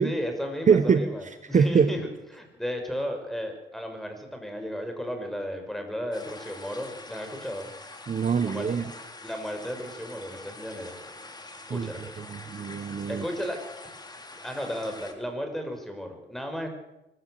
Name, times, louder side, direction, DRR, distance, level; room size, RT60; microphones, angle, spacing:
voice 1, 0.0-7.7 8.4-8.7 9.2-11.2 11.7-12.3 13.1-14.0 14.3-16.7, equal, ahead, 4 dB, 6.0 m, -34 dB
voice 2, 0.7-1.1 1.5-1.9 8.1-8.9 11.7-11.9 12.3-13.2, right 6 dB, 40° right, 11 dB, 1.1 m, -23 dB
sound 1, 6.1-15.1, left 2 dB, 20° left, 3.5 m, -45 dB
24.5 x 14.5 x 8.0 m, 0.91 s
cardioid pair, 90°, 20 cm